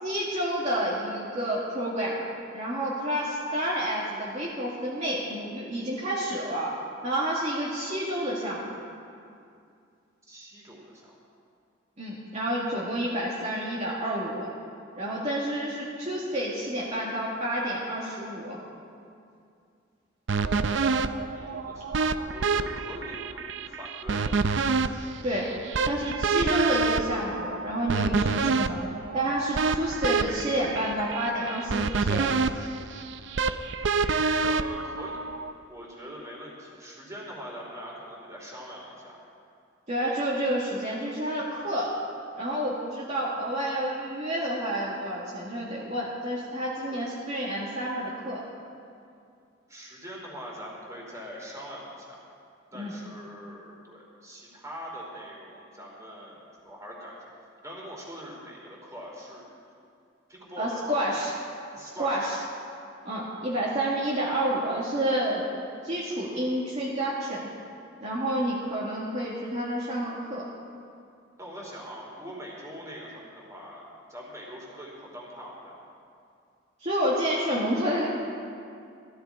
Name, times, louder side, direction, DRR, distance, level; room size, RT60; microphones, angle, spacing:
voice 1, 0.0-2.3 2.5-6.7 7.0-8.7 12.0-14.5 14.9-18.6 25.2-25.5 25.9-28.8 29.1-32.3 39.9-42.0 42.3-48.4 52.7-52.9 60.6-61.3 61.8-62.4 63.1-65.5 65.8-67.5 68.0-70.5 76.8-78.1, right 1 dB, 40° right, -7 dB, 1.9 m, -29 dB
voice 2, 10.2-11.1 21.3-22.0 22.3-24.4 34.4-35.2 35.7-39.2 46.9-47.1 49.7-52.2 52.7-57.3 57.6-59.5 60.3-60.8 61.7-62.3 71.4-75.8, equal, 15° right, -3 dB, 3.0 m, -42 dB
sound 1, 20.3-35.5, right 4 dB, 70° right, 0.5 m, -27 dB
15.5 x 14.0 x 4.7 m, 2.4 s
head